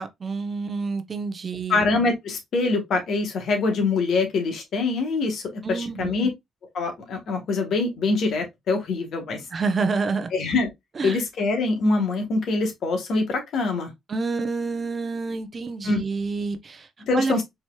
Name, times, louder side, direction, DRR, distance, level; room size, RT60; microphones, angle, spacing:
voice 1, 0.0-1.8 5.6-6.3 9.5-10.3 11.0-11.2 14.1-16.9 17.1-17.3, right 4 dB, 40° right, 0.7 m, -28 dB
voice 2, 1.7-6.3 6.7-9.5 10.3-10.7 11.0-13.9 15.8-16.0 17.0-17.4, left 3 dB, 65° left, 1.3 m, -24 dB
4.5 x 3.0 x 2.2 m
cardioid pair, 90°, 0 cm